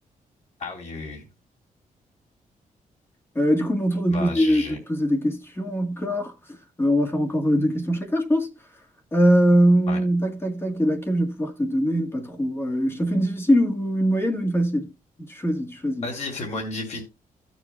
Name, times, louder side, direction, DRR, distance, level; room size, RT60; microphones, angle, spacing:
voice 1, 0.6-1.3 4.1-4.8 9.9-10.0 16.0-17.0, left 3 dB, 50° left, 3.2 m, -32 dB
voice 2, 3.3-6.3 6.8-8.5 9.1-14.9 15.3-16.1, equal, 15° left, 1.7 m, -22 dB
16.0 x 7.2 x 2.3 m
wide cardioid pair, 150°, 14 cm